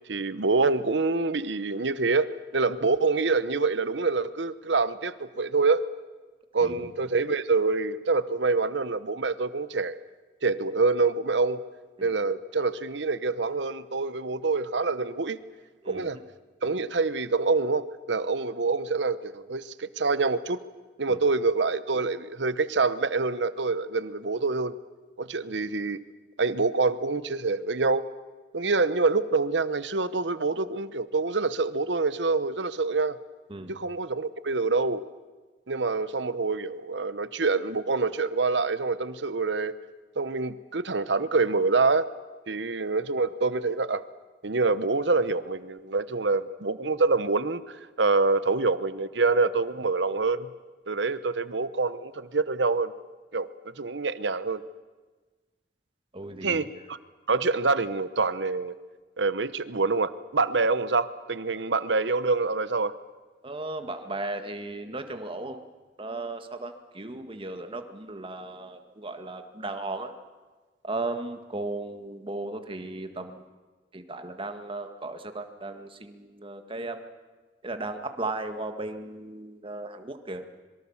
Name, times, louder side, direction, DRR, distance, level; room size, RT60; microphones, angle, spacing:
voice 1, 0.1-2.3 2.5-5.8 6.5-10.0 10.4-11.6 12.0-15.4 15.9-16.2 16.6-20.6 21.0-24.7 25.2-26.0 26.4-28.0 28.5-33.2 33.7-35.0 35.7-39.7 40.2-42.1 42.5-44.0 44.4-50.5 50.9-52.9 53.3-53.5 53.8-54.6 56.4-57.0 57.3-58.8 59.2-62.9, right 3 dB, 70° right, 14 dB, 1.0 m, -26 dB
voice 2, 6.6-6.9 12.0-12.1 15.8-16.2 21.1-21.2 33.5-33.8 56.1-56.6 63.4-65.6 66.0-70.1 70.8-73.4 73.9-77.0 77.6-80.4, right 2 dB, 30° right, 7 dB, 1.8 m, -36 dB
25.5 x 23.0 x 7.2 m, 1.3 s
head